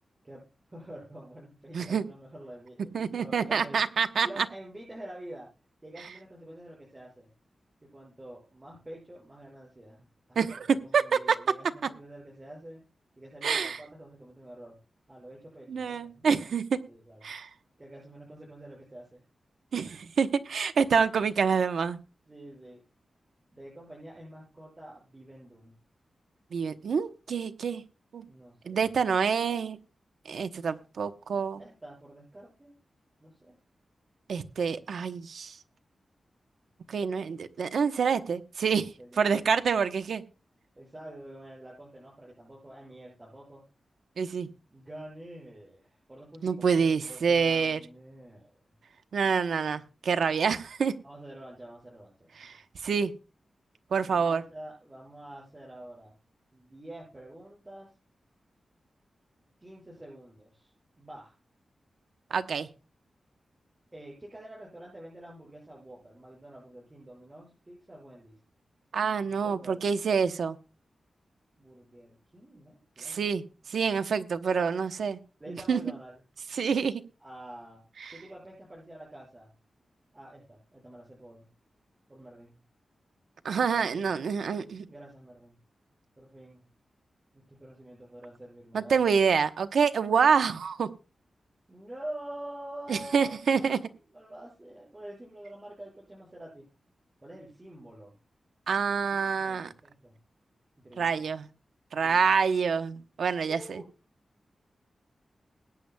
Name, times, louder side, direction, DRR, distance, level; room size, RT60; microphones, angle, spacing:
voice 1, 0.2-3.8 4.2-5.5 5.8-7.3 7.9-12.8 13.2-14.8 15.1-16.3 16.9-17.3 17.8-19.2 22.3-22.8 23.5-25.7 28.3-28.9 31.6-32.7 33.2-33.6 38.7-39.3 40.7-43.6 44.7-48.5 51.0-52.3 54.0-56.1 56.5-57.9 59.6-61.3 63.9-68.3 69.3-69.8 71.6-73.3 75.4-76.2 77.2-77.8 78.1-79.5 80.1-81.5 82.1-82.6 83.7-84.1 84.8-85.5 86.2-86.6 87.3-89.0 91.7-96.7 97.2-98.1 98.8-100.1 100.8-101.1 101.9-102.3 103.5-103.9, right 1 dB, 20° right, -4 dB, 6.4 m, -47 dB
voice 2, 1.7-2.0 2.9-4.4 10.4-11.0 11.3-11.4 11.8-11.9 13.4-13.8 15.7-16.8 17.2-17.5 19.7-22.0 26.5-27.8 28.1-28.2 28.7-29.8 30.2-31.6 34.3-35.6 36.9-38.9 39.2-40.2 44.2-44.5 46.4-47.8 49.1-50.9 52.4-52.6 52.8-53.1 53.9-54.4 62.3-62.7 68.9-70.6 73.0-73.4 73.7-75.2 75.5-75.8 76.5-77.0 78.0-78.1 83.4-84.8 88.7-90.9 92.9-93.8 98.7-99.7 101.0-101.5 101.9-103.8, right 6 dB, 85° right, 9 dB, 0.9 m, -27 dB
21.5 x 9.7 x 2.3 m, 0.31 s
wide cardioid pair, 150°, 0 cm